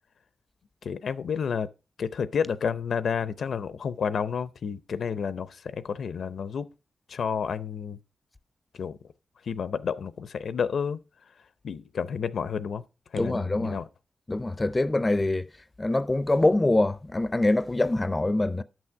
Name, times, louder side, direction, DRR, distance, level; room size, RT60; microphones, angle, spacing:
voice 1, 0.8-1.7 2.0-6.7 7.1-8.0 8.8-9.0 9.5-11.0 11.6-12.8 13.1-13.8, left 6 dB, 75° left, 0.6 m, -30 dB
voice 2, 13.2-13.8 14.3-15.5 15.8-18.6, left 2 dB, 20° left, 0.4 m, -24 dB
11.0 x 6.2 x 4.5 m
wide cardioid pair, 135°, 0 cm